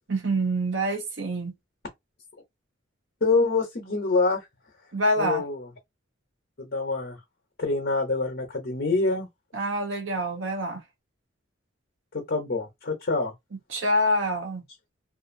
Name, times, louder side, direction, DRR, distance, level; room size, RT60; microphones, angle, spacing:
voice 1, 0.1-1.5 4.9-5.4 9.5-10.8 13.7-14.6, equal, 70° right, 0.9 m, -26 dB
voice 2, 3.2-4.5 5.2-5.7 6.6-7.2 7.6-9.3 12.1-13.3, left 3 dB, 55° left, 0.8 m, -26 dB
2.5 x 2.5 x 2.5 m
head